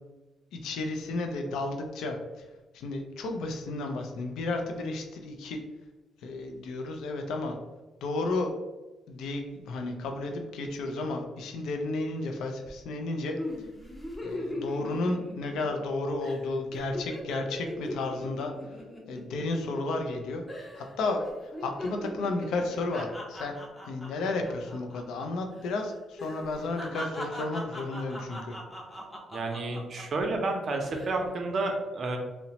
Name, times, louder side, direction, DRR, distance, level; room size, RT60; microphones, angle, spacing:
voice 1, 0.5-2.5 2.7-5.6 6.2-7.6 8.0-8.5 9.1-13.4 14.2-18.8 19.1-23.6 23.9-28.6, left 2 dB, 80° left, 3 dB, 0.3 m, -32 dB
sound 1, 13.4-15.9 16.2-16.4 16.7-20.2 20.5-20.9 21.2-25.3 25.5-25.7 26.2-30.3 30.8-31.2, left 1 dB, 15° left, 0.6 m, -40 dB
voice 2, 29.3-32.2, right 2 dB, 50° right, 3 dB, 0.5 m, -30 dB
2.8 x 2.0 x 2.8 m, 1.1 s
cardioid pair, 90°, 0 cm